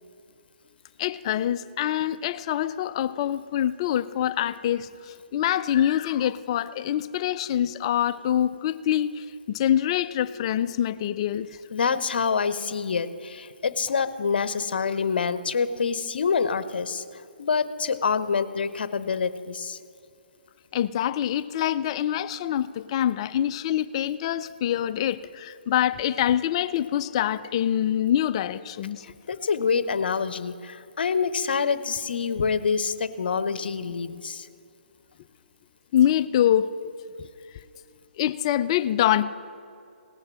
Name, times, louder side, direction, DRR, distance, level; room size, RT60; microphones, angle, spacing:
voice 1, 1.0-11.5 20.7-29.0 35.9-36.7 38.2-39.2, left 11 dB, 30° left, 14 dB, 0.4 m, -25 dB
voice 2, 11.7-17.0 17.4-19.8 29.0-34.5, left 5 dB, 65° left, 13 dB, 0.8 m, -26 dB
18.0 x 6.5 x 7.4 m, 2.5 s
hypercardioid pair, 150°, 6 cm